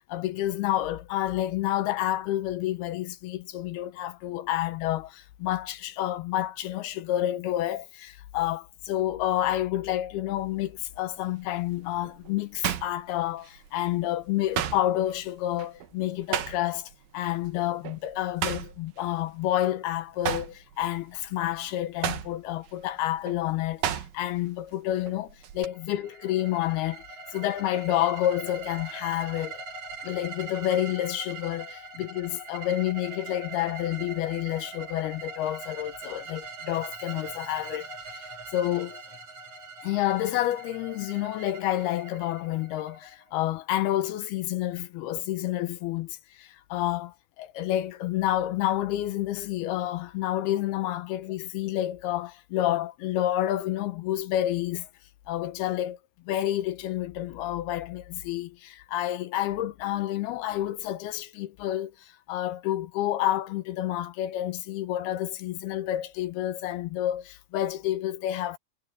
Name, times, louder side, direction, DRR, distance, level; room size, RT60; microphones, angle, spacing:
voice 1, 0.0-27.0 27.3-29.6 30.0-39.0 39.8-54.9 55.3-56.0 56.3-68.6, left 13 dB, 75° left, 2.7 m, -29 dB
sound 1, 10.4-10.7 11.3-13.8 14.0-17.0 17.3-17.5 17.8-19.8 20.1-24.5 24.7-25.7, right 10 dB, 65° right, 3.0 m, -34 dB
sound 2, 25.7-43.5, right 3 dB, 45° right, 6.1 m, -42 dB
omnidirectional pair, 4.8 m